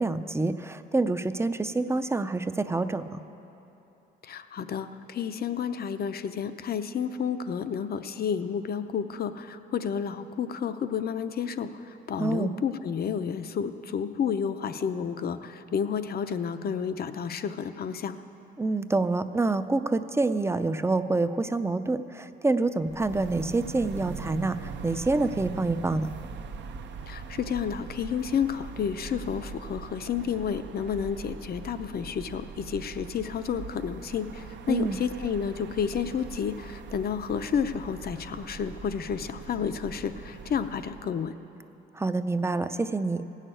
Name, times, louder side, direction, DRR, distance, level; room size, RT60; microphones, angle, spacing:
voice 1, 0.0-3.2 12.2-12.5 18.6-26.1 34.7-35.0 41.9-43.2, right 3 dB, 15° right, 11 dB, 0.5 m, -27 dB
voice 2, 4.2-18.2 27.0-41.3, left 7 dB, 50° left, 11 dB, 0.7 m, -31 dB
sound 1, 22.8-41.1, right 6 dB, 65° right, 0.7 m, -41 dB
16.0 x 6.5 x 9.0 m, 3.0 s
cardioid pair, 90°, 20 cm